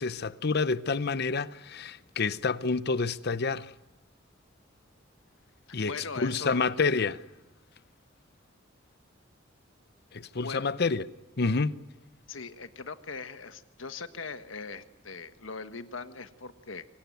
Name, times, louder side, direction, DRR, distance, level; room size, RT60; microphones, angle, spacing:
voice 1, 0.0-3.7 5.7-7.2 10.1-11.0 11.4-11.8, left 4 dB, 55° left, 0.8 m, -28 dB
voice 2, 5.8-6.6 10.4-10.7 12.3-16.8, left 4 dB, 90° left, 1.4 m, -40 dB
24.5 x 19.5 x 9.4 m
head